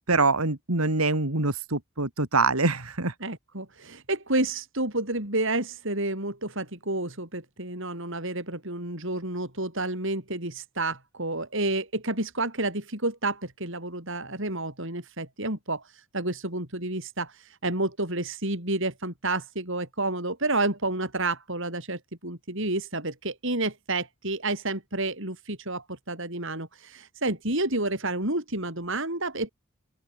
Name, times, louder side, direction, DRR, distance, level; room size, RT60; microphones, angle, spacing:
voice 1, 0.1-3.1, right 3 dB, 80° right, 2.9 m, -24 dB
voice 2, 3.2-29.5, right 2 dB, 60° right, 7.1 m, -30 dB
open air
head